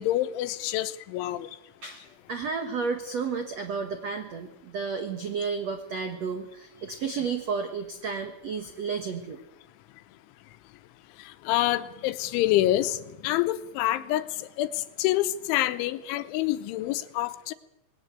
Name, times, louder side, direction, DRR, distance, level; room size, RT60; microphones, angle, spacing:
voice 1, 0.0-1.5 11.2-17.5, left 14 dB, 85° left, 12 dB, 3.3 m, -27 dB
voice 2, 1.8-9.4, right 5 dB, 80° right, 6 dB, 1.5 m, -32 dB
21.0 x 18.0 x 8.2 m, 0.89 s
omnidirectional pair, 5.4 m